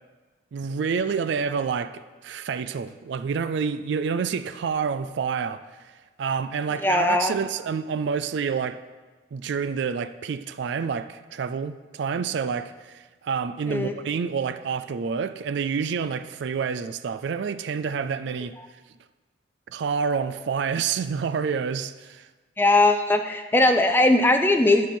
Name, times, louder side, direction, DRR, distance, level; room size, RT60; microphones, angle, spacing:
voice 1, 0.5-5.6 6.2-8.8 9.3-18.6 19.7-22.3, right 6 dB, 65° right, 0.3 m, -28 dB
voice 2, 6.8-7.4 13.7-13.9 22.6-24.9, left 2 dB, 10° left, 0.4 m, -19 dB
11.5 x 5.6 x 4.4 m
head